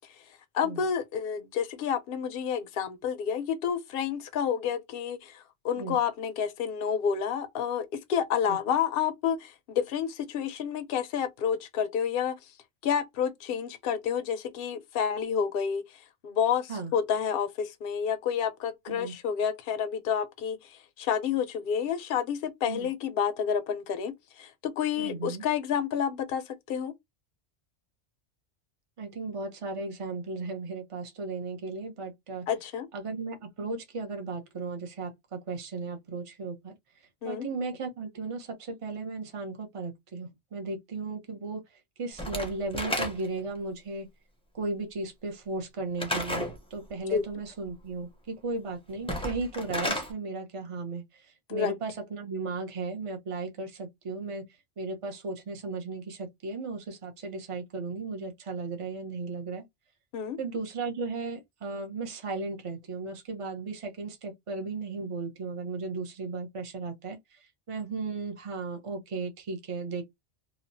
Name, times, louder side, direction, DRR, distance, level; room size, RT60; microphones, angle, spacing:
voice 1, 0.5-12.3 12.8-15.8 16.2-26.4 26.7-26.9 32.5-32.9 37.2-37.5 47.1-47.2 51.5-51.8 60.1-60.4, left 7 dB, 60° left, 0.8 m, -29 dB
voice 2, 25.0-25.4 29.0-32.4 32.9-36.7 37.2-41.6 42.0-44.1 44.5-54.4 54.8-59.7 60.4-67.4 67.7-70.0, right 3 dB, 35° right, 0.7 m, -35 dB
Slam / Wood, 42.2-43.5 46.0-46.6 49.0-50.1, left 1 dB, 5° left, 0.5 m, -32 dB
2.9 x 2.3 x 2.6 m
omnidirectional pair, 1.2 m